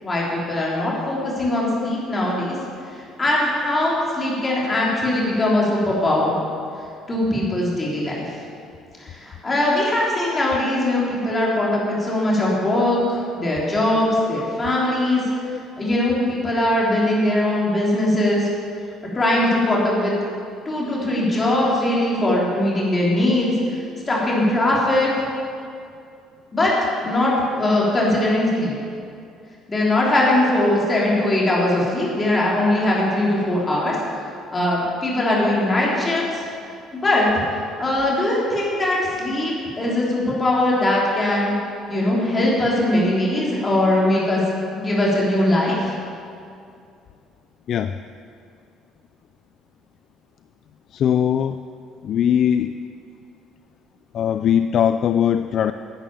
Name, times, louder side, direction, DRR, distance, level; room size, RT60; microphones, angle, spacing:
voice 1, 0.0-2.6 3.2-6.3 7.1-8.2 9.0-15.2 15.8-18.5 19.1-20.1 20.6-23.5 24.1-25.3 26.5-26.7 27.0-28.7 29.7-33.9 34.5-36.4 36.9-37.4 37.8-41.5 41.9-44.4 44.7-45.9, left 1 dB, 20° left, -5 dB, 3.3 m, -20 dB
voice 2, 50.9-51.5 52.0-52.7 54.1-55.7, left 9 dB, 50° left, 10 dB, 0.3 m, -20 dB
11.0 x 8.9 x 7.3 m, 2.5 s
cardioid pair, 140°, 0 cm